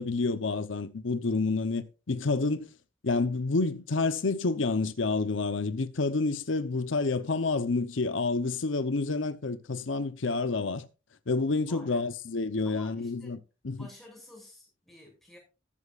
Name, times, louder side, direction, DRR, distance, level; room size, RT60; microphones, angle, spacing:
voice 1, 0.0-2.7 3.0-10.9 11.3-13.4 13.6-13.8, left 3 dB, 85° left, 0.8 m, -29 dB
voice 2, 11.6-12.1 12.6-13.4 13.7-15.4, left 1 dB, ahead, 6.5 m, -51 dB
13.5 x 13.5 x 2.5 m
head